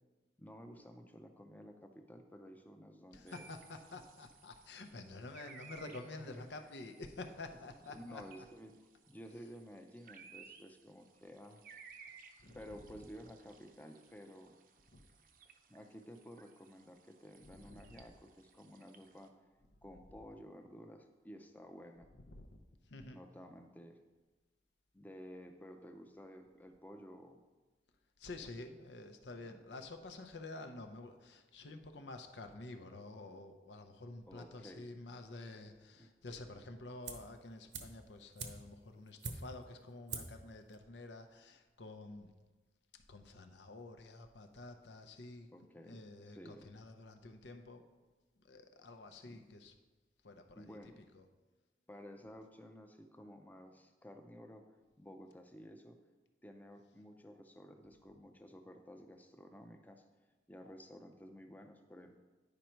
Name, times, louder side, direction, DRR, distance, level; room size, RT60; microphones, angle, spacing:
voice 1, 0.4-3.5 6.1-6.7 7.9-11.6 12.5-14.6 15.7-19.3 19.8-22.1 23.1-24.0 24.9-27.4 29.4-29.6 34.3-34.9 36.0-36.1 45.5-46.7 49.2-49.4 50.5-51.0 51.9-54.6 55.0-56.0 56.4-60.0 60.5-62.2, equal, 10° left, 5 dB, 0.5 m, -53 dB
voice 2, 3.1-8.2 12.4-12.6 14.9-15.1 17.6-17.8 22.3-22.5 22.9-23.2 28.2-42.3 43.1-45.5 45.8-47.8 48.4-49.7 50.2-50.8 51.1-51.2, left 2 dB, 85° left, 6 dB, 0.8 m, -49 dB
sound 1, 3.3-19.3, right 6 dB, 50° right, 0.6 m, -60 dB
sound 2, 37.0-37.4 37.7-39.7 40.1-40.5 40.7-40.8, right 4 dB, 85° right, 0.9 m, -45 dB
9.8 x 5.3 x 4.5 m, 1.3 s
head